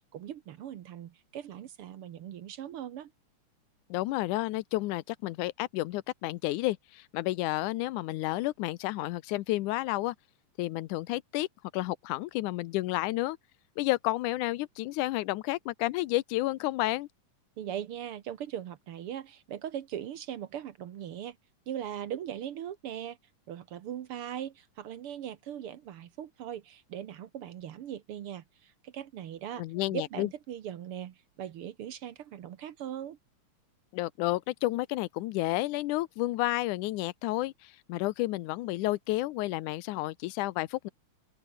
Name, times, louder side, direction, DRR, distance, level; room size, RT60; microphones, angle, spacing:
voice 1, 0.1-3.1 17.6-21.4 21.7-23.2 23.5-29.6 29.9-33.2, right 10 dB, 60° right, 1.5 m, -40 dB
voice 2, 3.9-10.2 10.6-11.5 11.7-13.4 13.8-17.1 29.6-30.3 33.9-40.9, left 18 dB, 80° left, 2.2 m, -31 dB
open air
omnidirectional pair, 3.7 m